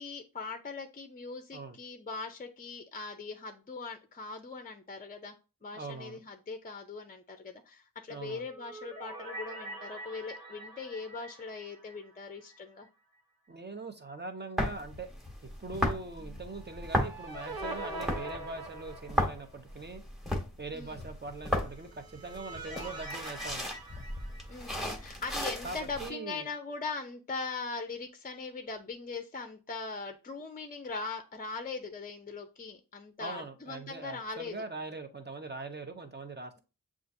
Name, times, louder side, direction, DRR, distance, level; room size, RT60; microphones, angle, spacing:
voice 1, 0.0-5.3 5.6-12.9 16.2-16.4 20.7-21.0 24.5-34.6, left 4 dB, 25° left, 0.5 m, -40 dB
voice 2, 5.7-6.2 8.1-8.5 13.5-15.1 15.4-20.0 20.6-23.8 25.6-26.5 33.2-36.6, right 3 dB, 30° right, 0.7 m, -42 dB
sound 1, 8.3-12.6 12.9-13.0 16.5-19.6 21.7-25.0, right 1 dB, 85° right, 1.0 m, -44 dB
sound 2, 14.6-26.1, equal, ahead, 1.1 m, -35 dB
7.3 x 2.5 x 2.6 m
wide cardioid pair, 110°, 34 cm